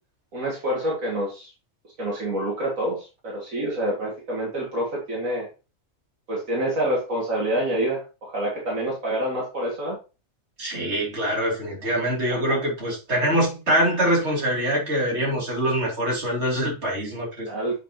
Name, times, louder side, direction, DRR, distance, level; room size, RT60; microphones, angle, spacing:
voice 1, 0.3-1.5 2.0-5.5 6.3-10.0 12.3-12.6 17.5-17.8, right 1 dB, 75° right, 2.6 m, -27 dB
voice 2, 10.6-17.5, right 1 dB, 50° right, 3.3 m, -24 dB
8.3 x 5.7 x 2.9 m
omnidirectional pair, 1.4 m